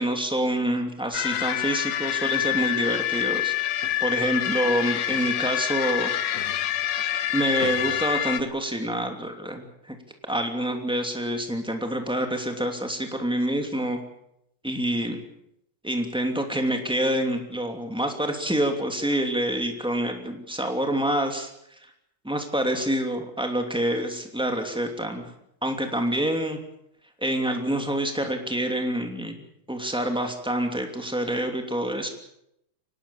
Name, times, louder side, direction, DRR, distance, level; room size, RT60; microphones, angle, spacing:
voice 1, 0.0-6.1 7.3-9.9 10.3-14.0 14.6-15.2 15.8-21.5 21.8-21.9 22.2-25.3 25.6-26.6 27.2-32.1, right 1 dB, ahead, 4 dB, 2.0 m, -27 dB
sound 1, 1.1-8.4, left 12 dB, 75° left, 1.5 m, -26 dB
24.5 x 19.0 x 7.2 m, 0.77 s
omnidirectional pair, 4.3 m